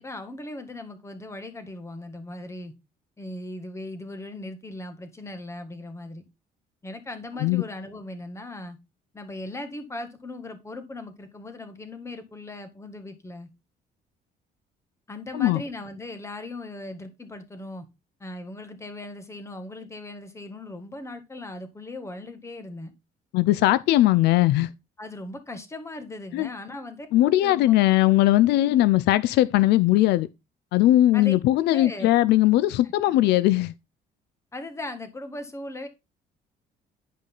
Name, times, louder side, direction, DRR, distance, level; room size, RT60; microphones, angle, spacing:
voice 1, 0.0-2.7 3.2-6.2 6.8-8.8 9.1-13.5 15.1-17.9 18.2-22.9 25.0-27.7 28.6-28.7 31.1-31.3 31.7-32.1 34.5-35.9, left 2 dB, 15° left, 1.9 m, -38 dB
voice 2, 23.3-24.7 26.3-26.5 27.1-30.3 30.7-33.7, left 15 dB, 80° left, 0.5 m, -19 dB
10.0 x 5.3 x 3.9 m
cardioid pair, 110°, 17 cm